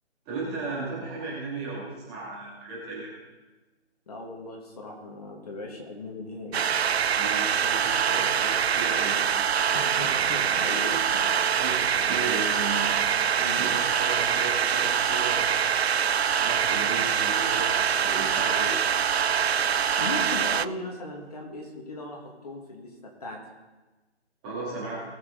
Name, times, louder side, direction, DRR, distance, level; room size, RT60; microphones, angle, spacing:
voice 1, 0.3-3.1 7.1-9.2 11.6-12.9 13.6-15.7 16.4-18.8 24.4-25.0, right 3 dB, 10° right, -6 dB, 2.3 m, -35 dB
voice 2, 4.1-6.7 9.7-11.2 11.5-11.7 13.4-13.7 20.0-23.4, left 1 dB, 35° left, 0 dB, 2.0 m, -37 dB
sound 1, 6.5-20.7, right 8 dB, 60° right, 0.5 m, -24 dB
19.5 x 7.4 x 3.9 m, 1.2 s
figure-of-eight pair, 165°, 35 cm